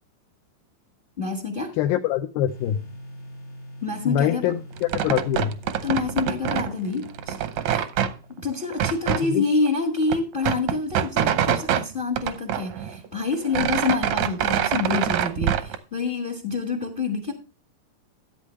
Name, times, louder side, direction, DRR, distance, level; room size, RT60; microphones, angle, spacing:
voice 1, 1.2-1.7 3.8-4.4 5.8-7.3 7.6-7.9 8.4-17.3, left 4 dB, 60° left, 0.5 m, -27 dB
voice 2, 1.8-2.8 4.1-5.6 9.1-9.5, left 11 dB, 85° left, 2.5 m, -24 dB
sound 1, 2.5-9.3, equal, 35° left, 1.0 m, -44 dB
sound 2, 4.8-6.7 7.0-8.1 8.7-9.2 9.7-9.8 10.0-11.8 12.2-13.1 13.3-15.8, right 10 dB, 75° right, 1.6 m, -25 dB
13.5 x 8.8 x 3.1 m
omnidirectional pair, 4.1 m